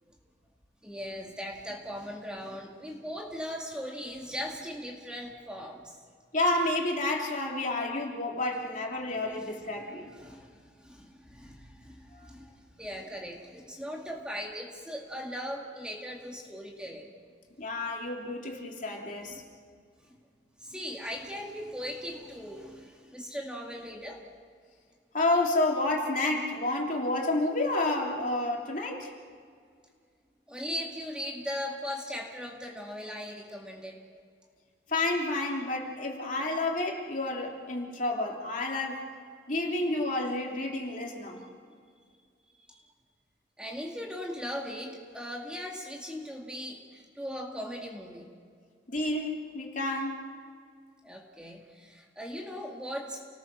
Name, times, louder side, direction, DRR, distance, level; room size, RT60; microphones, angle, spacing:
voice 1, 0.8-6.0 9.4-9.6 10.0-17.1 19.3-19.5 20.6-24.2 30.5-34.0 42.7-42.8 43.6-48.3 51.0-53.2, equal, 5° right, 0 dB, 2.1 m, -39 dB
voice 2, 6.3-10.1 12.1-12.3 17.6-19.4 25.1-29.1 34.9-39.1 39.5-41.4 48.9-50.2, left 2 dB, 45° left, 0 dB, 3.2 m, -30 dB
29.5 x 19.5 x 6.3 m, 2.1 s
head